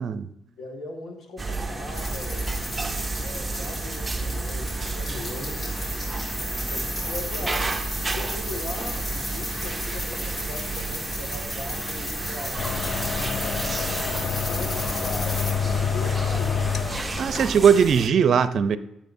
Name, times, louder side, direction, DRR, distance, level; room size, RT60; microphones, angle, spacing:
voice 1, 0.4-2.6 3.1-5.8 6.5-7.8 8.1-12.9 13.4-16.8 17.2-17.7, left 2 dB, 65° left, 2 dB, 1.8 m, -40 dB
sound 1, 1.4-18.1, right 3 dB, 20° right, 0.6 m, -32 dB
sound 2, 1.9-15.5, left 1 dB, 30° left, 2.4 m, -34 dB
sound 3, 12.6-17.7, left 6 dB, 45° left, 0.3 m, -28 dB
voice 2, 17.2-18.8, right 7 dB, 60° right, 14 dB, 0.5 m, -19 dB
14.5 x 7.3 x 2.7 m, 0.80 s
cardioid pair, 90°, 0 cm